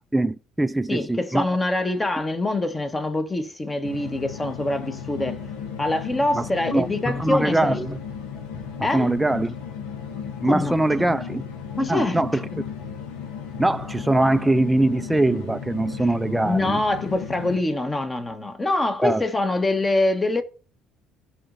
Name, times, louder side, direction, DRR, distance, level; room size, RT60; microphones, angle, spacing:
voice 1, 0.1-1.5 6.3-8.0 8.9-9.5 10.4-11.4 11.9-12.5 13.6-16.8 19.0-19.2, right 2 dB, 10° right, 0.4 m, -22 dB
voice 2, 0.9-5.4 5.8-7.8 8.8-9.1 10.4-11.0 11.8-12.2 16.4-20.4, left 2 dB, 20° left, 1.5 m, -25 dB
sound 1, 3.8-17.6, left 7 dB, 80° left, 1.1 m, -35 dB
13.5 x 5.1 x 2.7 m
hypercardioid pair, 65°, 0 cm